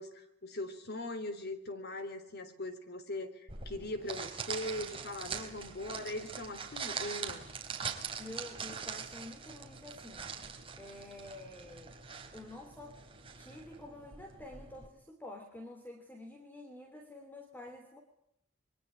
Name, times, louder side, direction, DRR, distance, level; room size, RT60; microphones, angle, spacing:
voice 1, 0.0-7.5, left 1 dB, 55° left, 10 dB, 3.6 m, -40 dB
sound 1, 3.5-14.9, right 6 dB, 30° right, 4.0 m, -43 dB
voice 2, 8.2-10.3 10.8-12.0 12.3-13.0 13.4-18.0, left 1 dB, 10° left, 5 dB, 3.2 m, -49 dB
28.0 x 23.5 x 9.0 m, 0.79 s
head